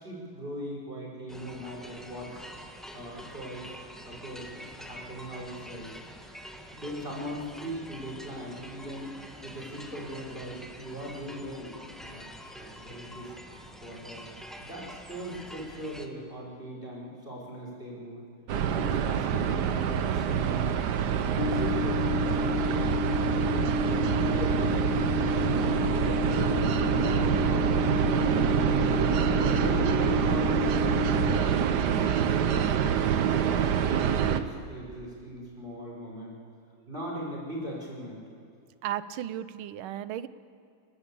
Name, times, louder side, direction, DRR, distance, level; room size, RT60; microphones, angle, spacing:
voice 1, 0.0-2.4 2.9-3.7 4.0-5.9 6.7-9.1 9.4-12.3 12.6-14.2 14.6-18.2 18.7-21.1 21.5-27.7 28.1-29.0 29.6-30.7 31.1-36.3 36.9-38.2, right 1 dB, 25° right, -4 dB, 5.3 m, -39 dB
sound 1, 1.3-16.1, equal, ahead, 1.1 m, -46 dB
sound 2, 18.5-34.4, right 8 dB, 60° right, 1.3 m, -26 dB
sound 3, 21.4-31.4, left 7 dB, 70° left, 1.9 m, -31 dB
voice 2, 38.8-40.3, right 12 dB, 90° right, 14 dB, 1.6 m, -34 dB
29.5 x 12.5 x 8.4 m, 2.3 s
omnidirectional pair, 2.2 m